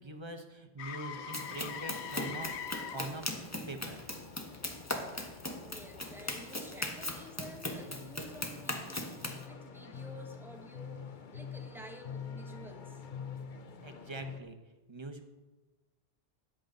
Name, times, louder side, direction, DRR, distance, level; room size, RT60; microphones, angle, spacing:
voice 1, 0.0-3.2 3.7-4.0 13.8-14.6 14.9-15.2, right 2 dB, 25° right, 5 dB, 1.0 m, -43 dB
Motor vehicle (road), 0.8-8.7 13.0-13.2, left 7 dB, 90° left, 1.0 m, -46 dB
sound 1, 1.1-14.4, left 6 dB, 50° left, 0.9 m, -48 dB
Run, 1.3-9.4, left 1 dB, 15° left, 1.1 m, -39 dB
voice 2, 5.6-13.0, equal, ahead, 2 dB, 1.4 m, -51 dB
13.5 x 10.0 x 3.9 m, 1.2 s
omnidirectional pair, 1.1 m